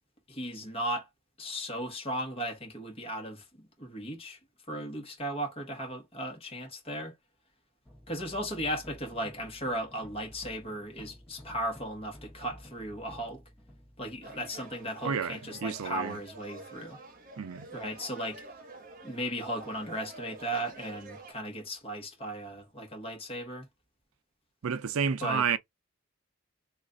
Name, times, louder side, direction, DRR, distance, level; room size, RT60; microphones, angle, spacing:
voice 1, 0.3-1.1 1.4-3.4 3.8-4.4 4.7-7.1 8.1-13.4 14.0-17.0 17.7-18.4 19.0-23.7 25.2-25.4, equal, 30° left, 1.4 m, -36 dB
sound 1, 7.8-15.1, equal, 10° left, 1.6 m, -52 dB
sound 2, 14.2-21.3, right 3 dB, 40° right, 1.0 m, -48 dB
voice 2, 15.0-16.2 17.4-17.7 24.6-25.6, right 6 dB, 75° right, 0.5 m, -30 dB
3.1 x 2.5 x 3.7 m
head